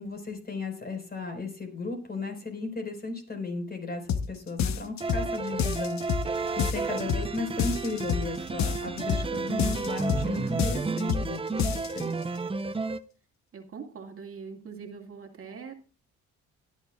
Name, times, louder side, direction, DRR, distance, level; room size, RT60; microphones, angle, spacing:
voice 1, 0.0-12.2, left 3 dB, 30° left, 5 dB, 4.6 m, -35 dB
sound 1, 4.1-4.3 4.6-5.3 5.6-6.3 6.6-7.3 7.6-8.3 8.6-9.3 9.6-10.3 10.6-11.3 11.6-12.0, left 7 dB, 65° left, 1.0 m, -28 dB
sound 2, 5.0-13.0, right 4 dB, 20° right, 0.7 m, -32 dB
sound 3, 6.3-10.7, right 7 dB, 70° right, 2.2 m, -48 dB
voice 2, 13.5-15.7, right 5 dB, 45° right, 4 dB, 2.2 m, -43 dB
19.0 x 10.5 x 2.4 m, 0.34 s
cardioid pair, 90°, 30 cm